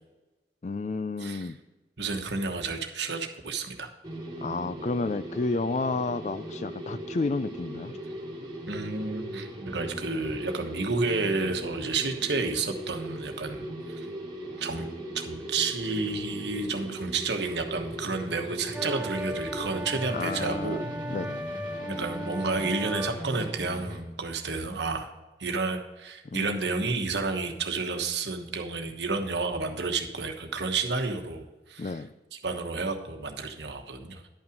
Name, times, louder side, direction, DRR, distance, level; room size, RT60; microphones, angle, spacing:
voice 1, 0.6-1.6 4.4-8.0 20.1-20.8 21.1-21.4 26.2-26.9 31.8-32.1, left 3 dB, 40° left, 14 dB, 0.4 m, -31 dB
voice 2, 2.0-3.9 8.7-14.1 14.6-14.9 15.1-20.8 22.0-25.1 25.4-31.9 32.3-34.2, right 3 dB, 75° right, 4 dB, 1.2 m, -31 dB
sound 1, 4.0-24.0, right 1 dB, 25° right, 1.7 m, -39 dB
sound 2, 18.7-23.2, equal, 5° right, 0.6 m, -36 dB
11.0 x 5.6 x 5.2 m, 1.2 s
head